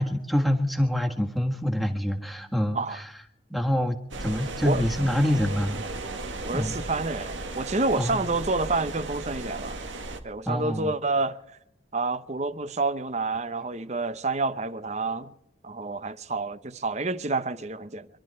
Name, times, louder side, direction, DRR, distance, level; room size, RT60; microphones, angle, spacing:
voice 1, 0.0-3.1 3.5-5.8 6.5-6.7 8.0-8.2 10.5-10.9, equal, ahead, 1.7 m, -26 dB
sound 1, 4.1-10.2, right 2 dB, 90° right, 2.1 m, -35 dB
voice 2, 6.4-9.8 10.2-11.4 11.9-15.3 15.6-18.1, right 3 dB, 35° right, 0.8 m, -28 dB
26.0 x 12.5 x 4.4 m
head